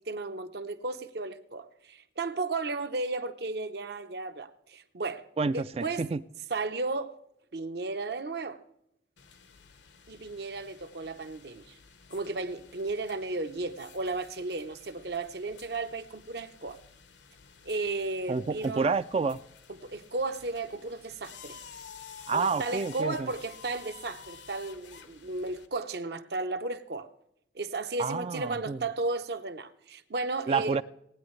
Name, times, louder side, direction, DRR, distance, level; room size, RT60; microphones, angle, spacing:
voice 1, 0.0-5.2 5.8-6.1 6.5-7.2 7.5-8.6 10.1-11.8 12.1-16.8 17.6-18.9 19.7-21.6 22.3-27.1 27.5-30.8, right 3 dB, 60° right, 0.8 m, -34 dB
voice 2, 5.4-6.2 18.3-19.4 22.3-23.3 28.0-28.8 30.5-30.8, right 4 dB, 35° right, 0.3 m, -29 dB
Air Sander, 9.2-25.7, left 7 dB, 80° left, 1.0 m, -52 dB
18.0 x 9.6 x 3.2 m
head